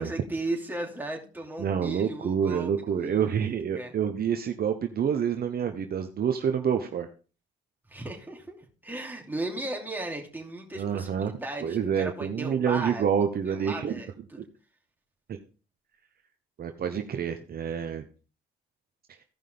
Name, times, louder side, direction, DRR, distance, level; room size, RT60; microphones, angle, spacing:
voice 1, 0.0-3.9 7.9-8.6 8.8-13.0 13.5-14.4, right 2 dB, 10° right, 0 dB, 2.9 m, -36 dB
voice 2, 1.6-7.1 10.7-11.3 11.6-14.0 15.3-15.4 16.6-18.0, right 7 dB, 50° right, 6 dB, 0.9 m, -28 dB
16.0 x 5.4 x 3.4 m, 0.36 s
cardioid pair, 90°, 20 cm